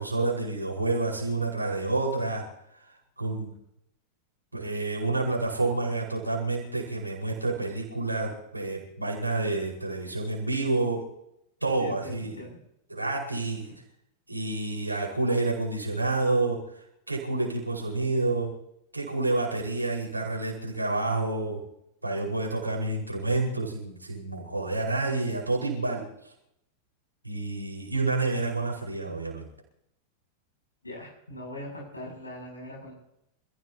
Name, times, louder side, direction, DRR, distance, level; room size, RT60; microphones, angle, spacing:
voice 1, 0.0-2.4 3.2-3.6 4.5-11.0 11.6-12.4 12.9-13.7 14.3-16.6 17.1-18.5 18.9-21.6 22.0-26.1 27.2-29.5, right 2 dB, 85° right, -2 dB, 5.1 m, -29 dB
voice 2, 11.6-12.5 30.8-32.9, left 1 dB, 80° left, -1 dB, 7.6 m, -41 dB
28.0 x 15.0 x 2.9 m, 0.78 s
figure-of-eight pair, 90°, 0 cm